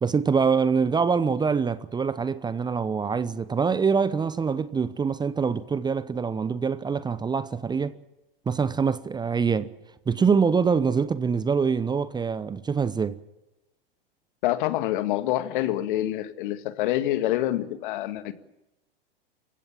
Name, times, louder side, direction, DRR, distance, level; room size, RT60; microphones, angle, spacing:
voice 1, 0.0-7.9 8.5-9.7 10.1-13.2, right 5 dB, 15° right, 0.9 m, -24 dB
voice 2, 14.4-18.3, left 14 dB, 55° left, 1.8 m, -26 dB
28.5 x 16.0 x 7.2 m
hypercardioid pair, 95°, 30 cm